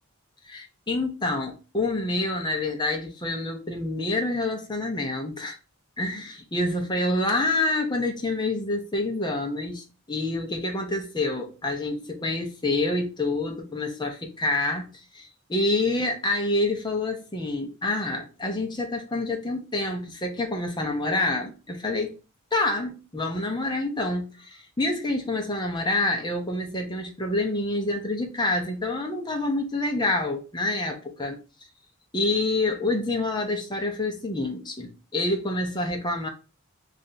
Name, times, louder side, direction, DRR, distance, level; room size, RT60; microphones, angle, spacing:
voice 1, 0.4-5.6 6.0-14.9 15.1-22.2 22.5-31.4 32.1-36.3, left 2 dB, 20° left, 0.7 m, -27 dB
3.4 x 2.6 x 3.9 m
head